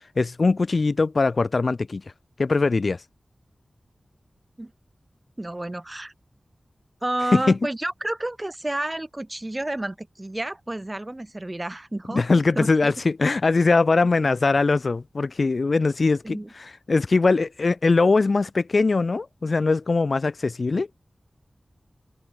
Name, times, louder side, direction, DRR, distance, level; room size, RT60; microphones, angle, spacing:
voice 1, 0.2-2.0 2.4-3.0 7.3-7.6 12.1-20.9, left 3 dB, 55° left, 0.5 m, -21 dB
voice 2, 5.4-6.1 7.0-12.3 12.6-12.9 16.2-16.5, right 1 dB, 20° right, 2.4 m, -30 dB
wide cardioid pair, 100°, 0 cm